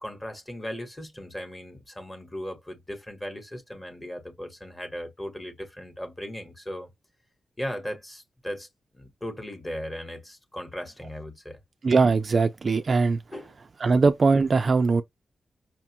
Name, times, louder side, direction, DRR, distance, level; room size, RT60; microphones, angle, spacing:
voice 1, 0.0-6.9 7.6-8.7 8.9-11.6 13.3-13.5, equal, 15° left, 1.0 m, -37 dB
voice 2, 11.8-13.2 13.8-15.0, right 4 dB, 35° right, 0.3 m, -21 dB
5.6 x 2.2 x 2.8 m
wide cardioid pair, 170°, 0 cm